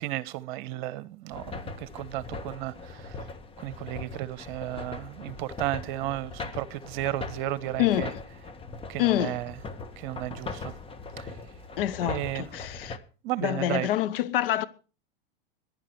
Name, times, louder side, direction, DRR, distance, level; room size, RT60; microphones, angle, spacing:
voice 1, 0.0-3.3 3.6-8.1 8.9-9.5 10.0-10.7 11.2-11.4 12.0-12.5 13.2-13.9, right 15 dB, 55° right, 1.2 m, -34 dB
sound 1, 1.3-13.0, left 4 dB, 20° left, 1.6 m, -40 dB
voice 2, 7.8-8.2 9.0-9.4 11.8-13.0 13.4-14.7, left 13 dB, 70° left, 1.1 m, -26 dB
15.0 x 11.0 x 4.7 m
hypercardioid pair, 115°, 30 cm